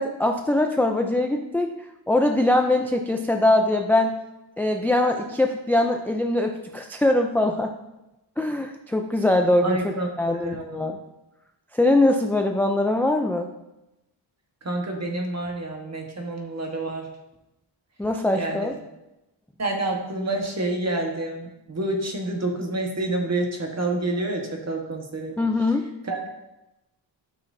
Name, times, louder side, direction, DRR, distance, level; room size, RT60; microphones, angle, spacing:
voice 1, 0.0-1.7 2.1-4.2 4.6-7.7 8.4-11.0 11.7-13.5 18.0-18.7 25.4-25.9, left 1 dB, 5° left, 4 dB, 0.3 m, -22 dB
voice 2, 9.6-10.1 10.4-10.9 14.6-17.1 18.3-18.7 19.6-25.3 26.0-26.3, right 2 dB, 35° right, 1 dB, 1.3 m, -28 dB
12.5 x 5.9 x 2.7 m, 0.94 s
wide cardioid pair, 135°, 46 cm